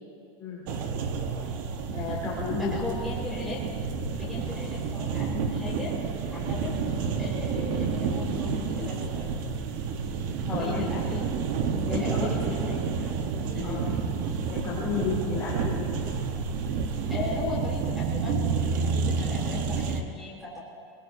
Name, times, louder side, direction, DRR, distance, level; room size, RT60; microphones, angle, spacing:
voice 1, 0.4-0.7 1.9-2.7 10.4-10.8 11.9-12.5 13.6-13.8 14.5-15.9, left 5 dB, 15° left, -8 dB, 2.5 m, -32 dB
sound 1, 0.7-20.0, right 5 dB, 45° right, 1.0 m, -30 dB
voice 2, 2.5-3.6 4.1-5.9 6.3-9.3 10.5-11.2 11.9-12.6 13.0-13.1 13.5-13.8 17.1-20.6, left 3 dB, ahead, -5 dB, 4.1 m, -37 dB
23.5 x 21.5 x 2.6 m, 2.3 s
supercardioid pair, 175°, 15 cm